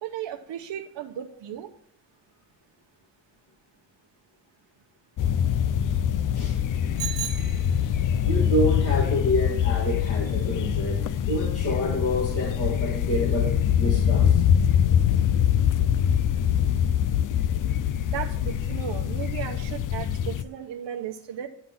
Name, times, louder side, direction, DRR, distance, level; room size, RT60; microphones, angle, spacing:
voice 1, 0.0-1.7 18.0-21.5, right 10 dB, 80° right, 4 dB, 1.0 m, -35 dB
sound 1, 5.2-20.4, left 9 dB, 50° left, 0.4 m, -24 dB
Bicycle bell, 7.0-8.2, right 10 dB, 50° right, 1.2 m, -35 dB
voice 2, 8.2-14.4, left 1 dB, 35° left, -3 dB, 1.8 m, -28 dB
12.0 x 4.0 x 7.1 m, 0.73 s
wide cardioid pair, 165°, 43 cm